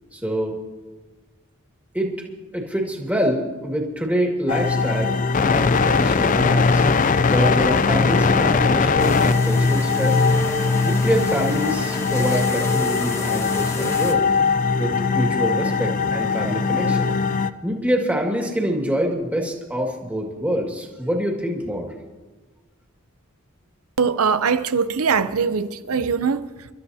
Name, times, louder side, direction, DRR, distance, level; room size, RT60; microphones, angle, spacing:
voice 1, 0.1-0.6 1.9-2.1 2.5-6.8 7.3-10.2 10.8-14.2 14.8-17.1 17.6-21.9, equal, 5° right, 2.0 m, -25 dB
sound 1, 4.5-17.5, left 4 dB, 35° left, 0.4 m, -20 dB
sound 2, 9.0-14.1, left 1 dB, 15° left, 1.1 m, -31 dB
voice 2, 24.0-26.7, right 5 dB, 85° right, 0.7 m, -22 dB
29.0 x 12.5 x 2.8 m
head